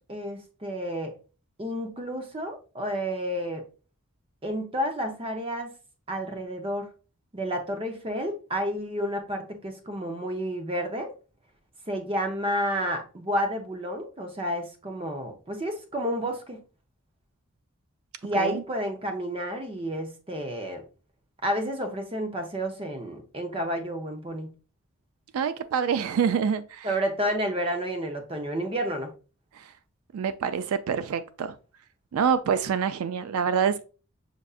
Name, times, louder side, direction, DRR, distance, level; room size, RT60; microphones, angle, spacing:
voice 1, 0.1-1.2 1.6-3.6 4.4-5.7 6.1-6.9 7.3-11.1 11.9-16.6 18.2-20.8 21.4-24.5 26.8-29.1, equal, 25° right, 0.6 m, -30 dB
voice 2, 25.3-26.9 29.6-29.7 30.1-31.5 32.1-33.8, right 7 dB, 80° right, 0.3 m, -26 dB
6.5 x 2.6 x 2.3 m
head